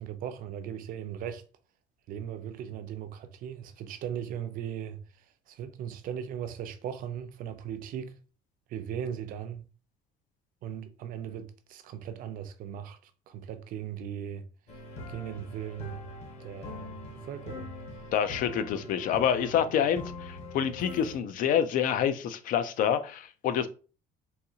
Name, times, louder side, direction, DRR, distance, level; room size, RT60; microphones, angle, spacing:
voice 1, 0.0-1.4 2.1-8.1 8.7-9.7 10.6-14.5 15.1-16.1 16.4-17.7, right 9 dB, 55° right, 0.5 m, -38 dB
sound 1, 14.7-21.1, left 1 dB, 40° left, 0.9 m, -43 dB
voice 2, 18.1-23.7, left 9 dB, 55° left, 0.5 m, -27 dB
4.0 x 2.8 x 2.7 m
cardioid pair, 155°, 17 cm